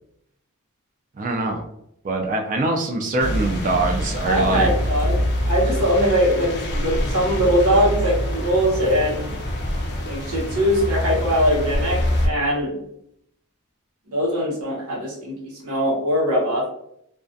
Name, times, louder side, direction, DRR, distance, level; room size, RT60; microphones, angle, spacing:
voice 1, 1.2-1.7 2.0-4.7, right 2 dB, 35° right, 2 dB, 0.3 m, -23 dB
sound 1, 3.2-12.3, equal, 50° left, 0.4 m, -25 dB
voice 2, 4.2-5.2 5.4-9.4 10.0-12.8 14.1-16.7, equal, 90° right, -4 dB, 0.9 m, -21 dB
2.3 x 2.3 x 2.5 m, 0.74 s
head